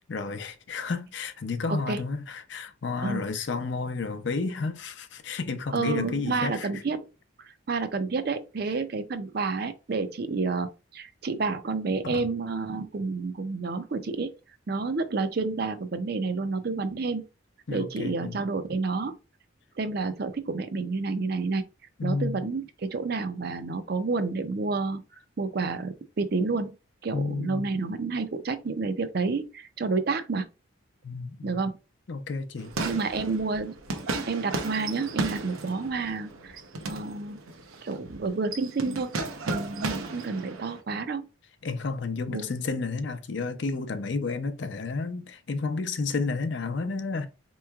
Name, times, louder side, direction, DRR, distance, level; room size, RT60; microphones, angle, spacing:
voice 1, 0.0-6.8 12.0-12.3 17.7-18.4 22.0-22.4 27.1-27.7 31.0-31.6 32.1-32.7 41.6-47.3, left 4 dB, 60° left, 0.5 m, -31 dB
voice 2, 5.7-7.1 7.4-14.3 14.7-17.2 17.7-19.2 19.8-21.6 22.0-25.0 25.4-26.7 27.0-30.5 31.4-31.7 32.8-33.7 34.3-37.4 37.8-39.1 39.5-41.3 42.3-42.5, right 4 dB, 50° right, 0.4 m, -29 dB
sound 1, 32.6-40.8, right 3 dB, 90° right, 0.7 m, -35 dB
4.4 x 3.0 x 2.3 m
head